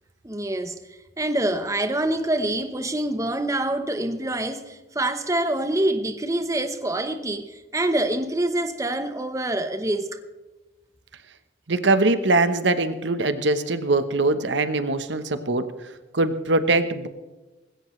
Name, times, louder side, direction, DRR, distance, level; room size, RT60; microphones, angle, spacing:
voice 1, 0.2-0.8 1.2-10.2, right 1 dB, 20° right, 1.0 m, -26 dB
voice 2, 11.7-15.7 16.1-17.1, right 2 dB, 85° right, 1.1 m, -22 dB
19.5 x 17.0 x 3.2 m
head